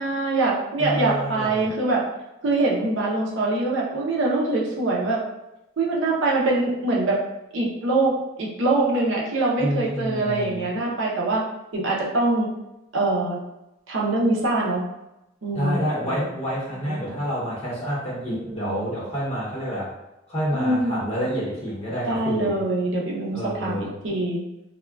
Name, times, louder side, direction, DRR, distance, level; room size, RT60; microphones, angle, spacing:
voice 1, 0.0-2.1 2.4-5.2 5.8-7.2 7.5-11.4 11.7-12.5 12.9-13.4 13.9-14.8 15.4-16.1 16.8-17.1 18.3-18.9 20.5-21.2 22.0-23.8 24.0-24.4, right 2 dB, 75° right, -3 dB, 0.6 m, -24 dB
voice 2, 0.8-1.7 9.6-10.7 15.5-19.9 20.3-22.6 23.3-23.9, equal, 30° left, -7 dB, 0.9 m, -28 dB
3.6 x 2.2 x 2.3 m, 0.91 s
head